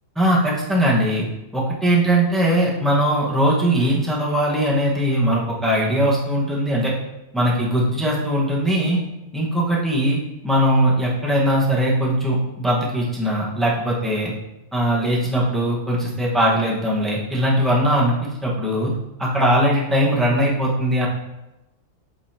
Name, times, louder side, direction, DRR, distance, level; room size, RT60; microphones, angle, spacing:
voice 1, 0.2-1.3 1.5-6.9 7.3-9.0 9.3-14.3 14.7-18.9 19.2-21.1, equal, ahead, -5 dB, 1.3 m, -20 dB
8.0 x 5.4 x 2.9 m, 0.94 s
omnidirectional pair, 1.4 m